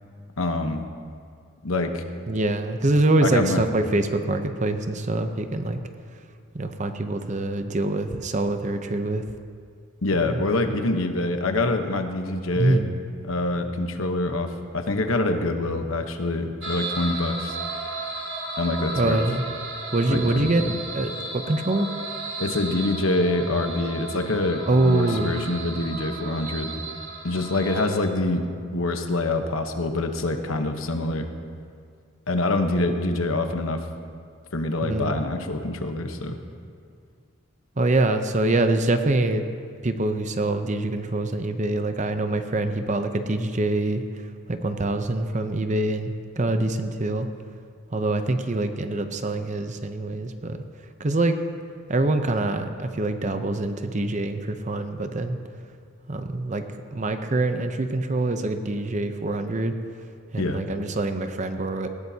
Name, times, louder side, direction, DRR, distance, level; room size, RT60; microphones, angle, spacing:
voice 1, 0.4-0.9 1.6-2.1 3.2-3.7 10.0-12.9 13.2-17.6 18.6-19.2 20.1-20.5 22.4-26.8 27.2-31.3 32.3-33.8 34.5-36.4 60.4-60.6, left 2 dB, 75° left, 6 dB, 1.1 m, -25 dB
voice 2, 2.3-5.8 6.5-9.2 10.2-10.4 10.7-10.9 12.6-12.9 19.0-19.4 19.9-20.6 20.9-21.9 24.7-25.3 34.8-35.2 37.8-39.4 39.8-44.0 44.5-47.3 47.9-50.6 51.0-51.4 51.9-55.4 56.1-56.6 56.9-59.7 60.3-61.9, right 2 dB, 35° right, 7 dB, 0.7 m, -24 dB
sound 1, 16.6-27.9, right 2 dB, 65° right, 2.3 m, -34 dB
19.0 x 16.5 x 2.8 m, 2.2 s
head